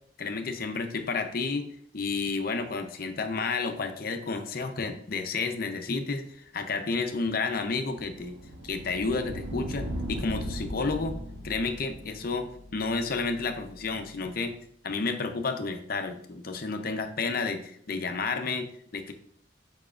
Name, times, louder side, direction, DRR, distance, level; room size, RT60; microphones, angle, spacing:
voice 1, 0.2-1.6 1.9-8.3 8.6-11.1 11.4-14.6 14.8-19.1, left 4 dB, 50° left, 6 dB, 0.6 m, -31 dB
sound 1, 7.4-14.0, right 1 dB, 85° right, 1.1 m, -39 dB
7.0 x 5.6 x 2.5 m, 0.63 s
head